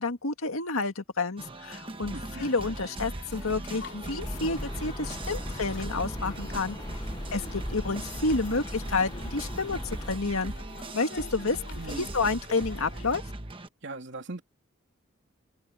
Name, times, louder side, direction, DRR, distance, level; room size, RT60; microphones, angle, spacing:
voice 1, 0.0-6.8 7.3-10.5 10.9-13.2, left 3 dB, 90° left, 1.9 m, -30 dB
sound 1, 1.4-13.7, right 1 dB, 25° right, 1.2 m, -39 dB
sound 2, 1.9-13.2, left 4 dB, 55° left, 3.0 m, -50 dB
voice 2, 2.1-2.5 11.8-12.1 13.8-14.4, right 2 dB, 60° right, 3.2 m, -39 dB
sound 3, 4.2-10.2, left 1 dB, 20° left, 0.8 m, -39 dB
open air
head